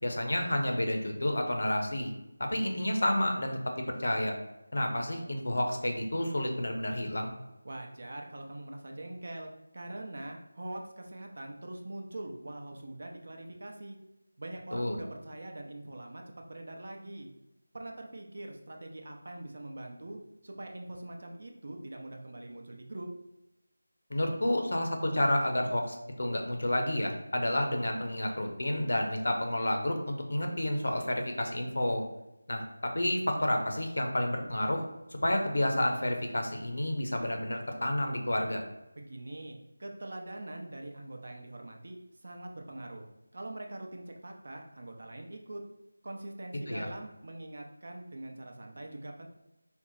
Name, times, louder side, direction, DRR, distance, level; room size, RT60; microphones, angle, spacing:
voice 1, 0.0-2.1 2.4-4.3 4.7-7.3 14.7-15.0 24.1-32.0 32.5-34.8 35.2-38.6 46.7-46.9, left 1 dB, 70° left, 3 dB, 0.8 m, -30 dB
voice 2, 7.6-14.0 14.4-17.3 17.7-23.1 39.0-43.1 43.3-45.6 46.0-49.3, right 1 dB, 55° right, 2 dB, 0.6 m, -43 dB
4.4 x 2.1 x 3.9 m, 0.94 s
figure-of-eight pair, 170°, 0 cm